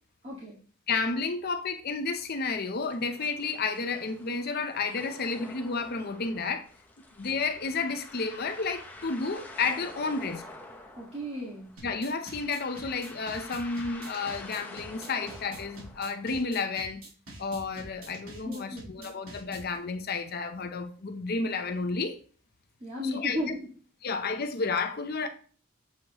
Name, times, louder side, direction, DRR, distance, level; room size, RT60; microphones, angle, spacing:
voice 1, 0.2-0.6 11.0-11.7 18.4-19.1 22.8-23.7, left 1 dB, 30° right, 1.7 m, -35 dB
voice 2, 0.9-6.6 7.2-10.4 11.8-17.0 17.4-22.2 23.0-23.4 24.0-25.3, left 4 dB, 50° left, 0.6 m, -31 dB
sound 1, 2.2-16.6, left 2 dB, 10° left, 0.8 m, -48 dB
sound 2, 11.8-19.8, right 1 dB, 90° right, 2.2 m, -46 dB
7.6 x 5.7 x 3.0 m
head